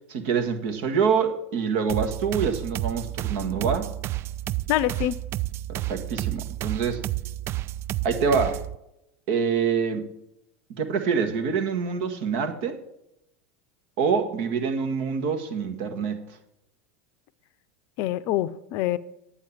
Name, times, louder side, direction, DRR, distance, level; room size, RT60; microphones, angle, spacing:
voice 1, 0.1-3.9 5.7-7.0 8.0-8.6 9.3-10.1 10.8-12.8 14.0-16.2, right 6 dB, 60° right, 1.7 m, -26 dB
sound 1, 1.9-8.8, right 15 dB, 40° right, 0.4 m, -31 dB
voice 2, 4.7-5.2 18.0-19.0, left 14 dB, 55° left, 0.6 m, -25 dB
9.1 x 8.9 x 7.4 m
hypercardioid pair, 90°, 6 cm